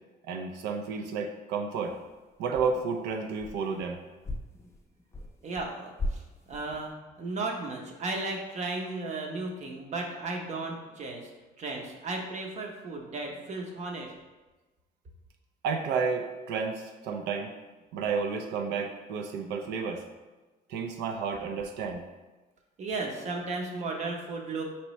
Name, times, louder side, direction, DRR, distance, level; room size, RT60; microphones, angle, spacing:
voice 1, 0.3-2.0 2.4-4.0 15.6-17.5 17.9-20.0 20.7-22.0, right 5 dB, 85° right, 3 dB, 0.5 m, -31 dB
walk carpet, 1.8-2.2 2.5-3.9 4.2-5.7 6.0-6.9, left 1 dB, 15° left, 0.5 m, -38 dB
voice 2, 5.4-6.2 6.5-11.3 11.6-14.1 22.8-24.6, right 3 dB, 45° right, 1 dB, 0.8 m, -35 dB
4.4 x 3.0 x 3.0 m, 1.2 s
cardioid pair, 110°, 17 cm